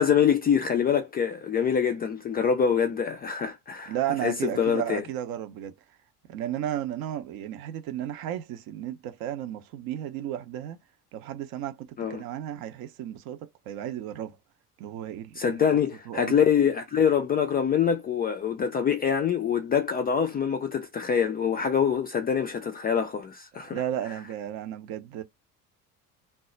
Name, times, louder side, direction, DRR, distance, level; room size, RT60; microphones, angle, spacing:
voice 1, 0.0-4.0 4.2-5.0 12.0-12.2 15.4-23.8, left 7 dB, 25° left, 0.3 m, -25 dB
voice 2, 3.9-5.7 6.3-10.8 11.1-14.4 14.8-15.6 16.1-16.4 23.7-25.2, right 11 dB, 50° right, 0.6 m, -33 dB
2.2 x 2.0 x 3.7 m
hypercardioid pair, 60°, 46 cm